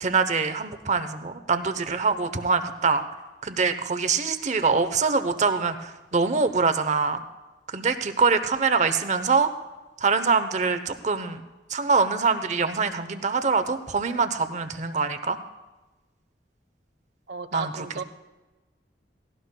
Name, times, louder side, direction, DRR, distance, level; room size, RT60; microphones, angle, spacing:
voice 1, 0.0-3.0 3.4-7.2 7.7-9.5 10.0-11.4 11.7-15.4 17.5-17.7, right 4 dB, 45° right, 10 dB, 0.8 m, -24 dB
voice 2, 17.3-18.0, right 4 dB, 70° right, 11 dB, 0.7 m, -34 dB
17.0 x 16.5 x 2.2 m, 1.1 s
head